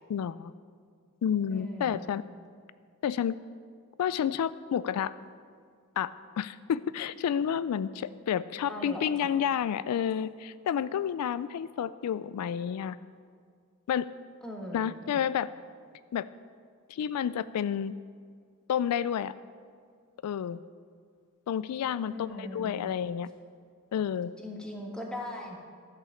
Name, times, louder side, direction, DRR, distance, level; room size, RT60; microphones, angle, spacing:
voice 1, 0.1-0.5 1.2-2.2 3.0-3.4 4.0-5.1 6.0-6.1 6.4-13.0 13.9-14.1 14.7-15.5 16.1-16.3 16.9-17.9 18.7-19.3 20.2-20.6 21.5-23.3 23.9-24.3, left 8 dB, 85° left, 17 dB, 0.3 m, -30 dB
voice 2, 1.5-2.0 8.7-9.3 14.4-15.2 22.1-22.9 24.4-25.6, left 1 dB, 5° left, 0 dB, 1.4 m, -40 dB
12.5 x 5.7 x 7.0 m, 2.1 s
head